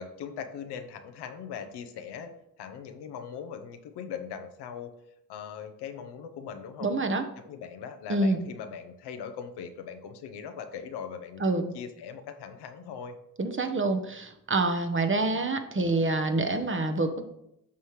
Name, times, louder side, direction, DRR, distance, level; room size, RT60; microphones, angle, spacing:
voice 1, 0.0-2.3 2.6-4.9 5.3-6.9 7.4-13.1, left 7 dB, 80° left, 7 dB, 0.9 m, -40 dB
voice 2, 6.8-7.3 8.1-8.4 11.4-11.7 13.4-17.3, right 2 dB, 30° right, 7 dB, 1.0 m, -27 dB
8.4 x 5.6 x 3.2 m, 0.80 s
supercardioid pair, 50°, 40 cm